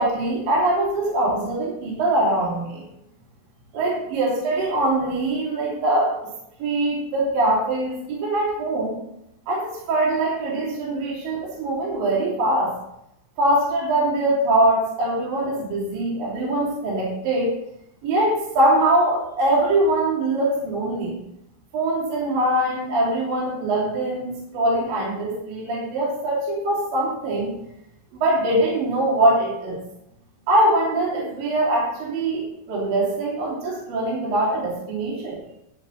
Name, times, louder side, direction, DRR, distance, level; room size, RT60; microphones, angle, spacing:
voice 1, 0.0-2.8 3.7-6.1 6.6-9.0 9.5-12.7 13.4-17.5 18.0-21.2 21.7-27.5 28.1-29.8 30.5-35.4, right 1 dB, 50° right, -4 dB, 4.0 m, -22 dB
11.0 x 11.0 x 3.1 m, 0.81 s
omnidirectional pair, 5.5 m